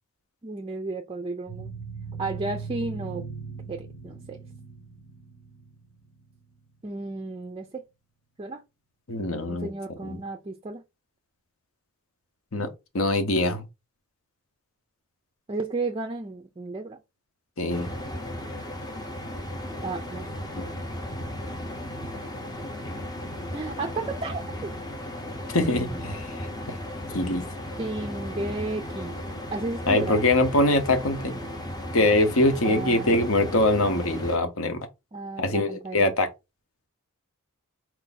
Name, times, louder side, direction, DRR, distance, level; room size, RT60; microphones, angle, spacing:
voice 1, 0.4-1.7 2.2-3.2 3.7-4.4 6.8-7.8 8.4-8.6 9.5-10.8 15.5-17.0 19.8-20.5 23.5-24.7 25.7-26.0 27.8-29.2 29.5-30.2 32.6-33.3 35.1-36.2, right 3 dB, 25° right, 0.4 m, -33 dB
sound 1, 1.5-6.6, right 5 dB, 85° left, 1.5 m, -39 dB
voice 2, 9.1-9.7 10.0-10.2 12.5-12.7 12.9-13.6 17.6-17.9 20.6-20.7 25.5-26.8 27.1-27.4 29.9-31.4 31.9-34.8 35.4-36.3, left 2 dB, 65° left, 0.9 m, -23 dB
sound 2, 17.7-34.4, left 1 dB, 15° left, 0.6 m, -35 dB
4.5 x 2.6 x 3.9 m
head